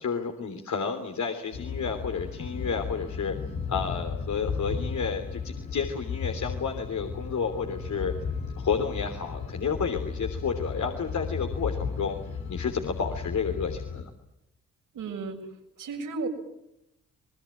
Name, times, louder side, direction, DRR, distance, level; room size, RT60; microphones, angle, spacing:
voice 1, 0.0-3.3 3.7-8.1 8.6-12.2 12.5-14.1, left 6 dB, 60° left, 5 dB, 3.4 m, -31 dB
sound 1, 1.5-14.0, left 5 dB, 85° left, 4.5 m, -35 dB
voice 2, 14.9-15.4 15.8-16.3, right 4 dB, 75° right, 2 dB, 6.8 m, -33 dB
27.5 x 21.0 x 8.7 m, 0.85 s
supercardioid pair, 50°, 32 cm